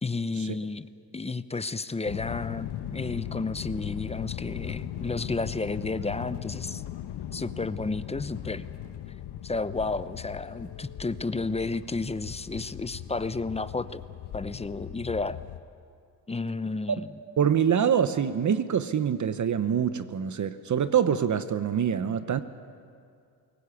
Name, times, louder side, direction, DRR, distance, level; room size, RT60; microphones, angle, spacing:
voice 1, 0.0-6.8 7.3-8.7 9.4-14.0 14.3-15.4 16.3-17.1, left 3 dB, 15° left, 14 dB, 0.7 m, -32 dB
sound 1, 2.1-15.6, left 11 dB, 75° left, 1.1 m, -38 dB
voice 2, 17.4-22.4, right 8 dB, 45° right, 11 dB, 1.0 m, -25 dB
22.0 x 18.5 x 8.4 m, 2.3 s
cardioid pair, 85°, 41 cm